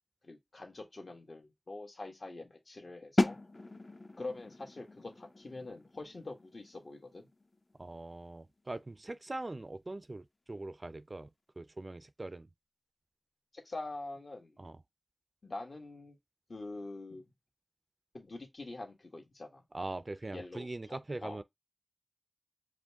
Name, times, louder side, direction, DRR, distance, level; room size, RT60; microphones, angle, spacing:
voice 1, 0.2-3.4 4.2-7.3 13.5-14.6 15.4-16.2 16.5-17.2 18.1-19.6 20.3-21.4, left 2 dB, 70° left, 1.3 m, -45 dB
sound 1, 3.2-8.9, left 2 dB, 40° left, 0.4 m, -37 dB
voice 2, 7.8-11.3 11.6-12.5 14.6-14.8 19.7-21.4, right 2 dB, 45° right, 0.3 m, -42 dB
5.0 x 2.1 x 3.4 m
wide cardioid pair, 75°, 0 cm